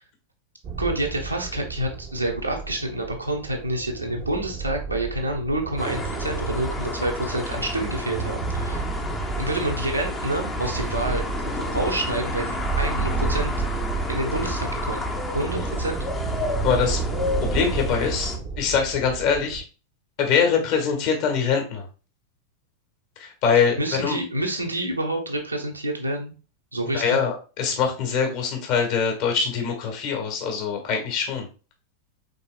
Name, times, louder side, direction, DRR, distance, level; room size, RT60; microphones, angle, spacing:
sound 1, 0.6-19.6, right 5 dB, 30° right, 0.7 m, -32 dB
voice 1, 0.8-8.9 9.4-13.5 14.1-15.0 15.3-16.0 23.7-26.3 26.7-27.2, right 1 dB, 85° right, 1 dB, 1.1 m, -28 dB
sound 2, 5.8-18.4, left 2 dB, 15° left, 0.8 m, -31 dB
voice 2, 16.6-17.0 17.4-19.6 20.2-21.9 23.2-24.2 26.9-31.5, left 6 dB, 45° left, 2 dB, 1.6 m, -23 dB
5.3 x 3.9 x 2.4 m, 0.34 s
figure-of-eight pair, 90°, 0 cm